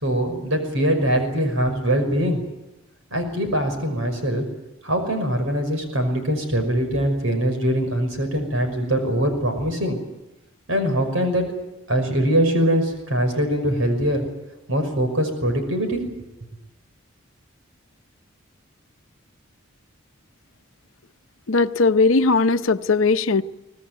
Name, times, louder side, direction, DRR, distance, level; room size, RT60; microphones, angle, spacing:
voice 1, 0.0-2.4 3.1-4.5 4.8-10.0 10.7-11.5 11.9-14.2 14.7-16.0, equal, 75° right, 5.8 m, -22 dB
voice 2, 21.5-23.4, left 3 dB, 75° left, 0.8 m, -18 dB
24.0 x 18.5 x 9.4 m
head